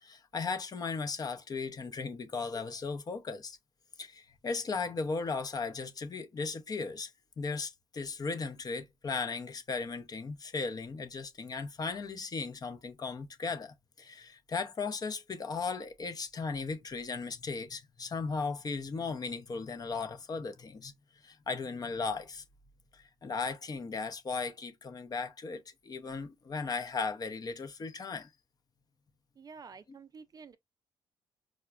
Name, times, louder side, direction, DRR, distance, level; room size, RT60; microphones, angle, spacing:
voice 1, 0.0-3.6 4.0-7.1 7.4-20.9 21.2-22.4 22.9-28.3, left 4 dB, 40° left, 0.6 m, -36 dB
voice 2, 29.4-30.6, right 5 dB, 40° right, 0.4 m, -50 dB
4.8 x 2.1 x 2.3 m
cardioid pair, 75°, 10 cm